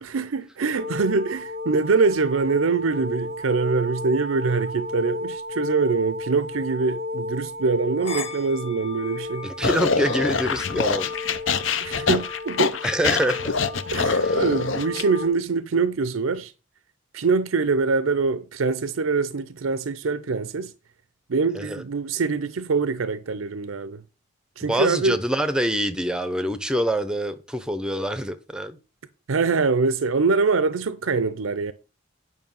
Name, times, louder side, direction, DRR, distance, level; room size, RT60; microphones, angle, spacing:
voice 1, 0.0-9.5 11.8-12.7 13.9-16.5 17.1-20.7 21.3-24.0 24.6-25.2 29.3-31.7, right 4 dB, 90° right, 0.6 m, -24 dB
sound 1, 0.7-15.3, left 2 dB, 30° left, 1.5 m, -33 dB
voice 2, 9.4-11.1 11.8-12.1 12.8-13.5 14.1-14.4 21.5-21.8 24.6-28.8, equal, 5° right, 0.6 m, -26 dB
sound 2, 9.6-15.0, left 5 dB, 70° left, 0.7 m, -25 dB
9.4 x 5.5 x 5.4 m
head